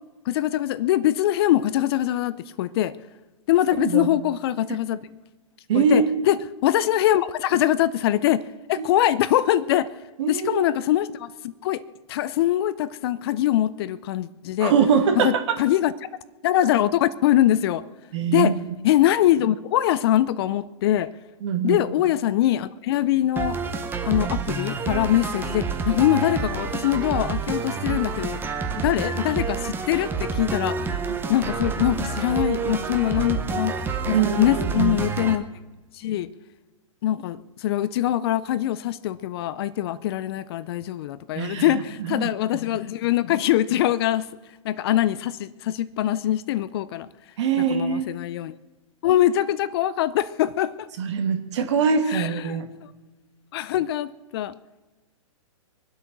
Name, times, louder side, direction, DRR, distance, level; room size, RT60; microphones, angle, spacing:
voice 1, 0.3-2.9 3.5-5.0 5.7-6.4 6.6-8.4 8.7-9.9 10.3-11.8 12.1-14.7 15.2-15.3 15.6-15.9 16.4-17.8 18.3-18.5 18.8-21.1 21.6-23.6 24.1-28.4 28.7-30.8 31.3-33.8 34.1-35.5 36.0-36.3 37.0-44.3 44.6-47.1 47.6-48.5 49.0-50.9 52.1-52.5 53.5-54.6, left 13 dB, 45° left, 16 dB, 0.6 m, -23 dB
voice 2, 3.7-4.1 5.7-6.1 8.8-8.9 10.2-10.6 14.6-15.6 18.1-18.8 21.4-21.9 34.1-35.0 41.4-42.3 47.4-48.1 51.0-52.7, right 6 dB, 55° right, 6 dB, 2.3 m, -23 dB
sound 1, 23.4-35.4, right 5 dB, 10° right, 1.1 m, -28 dB
24.0 x 8.1 x 6.2 m, 1.2 s
hypercardioid pair, 130°, 17 cm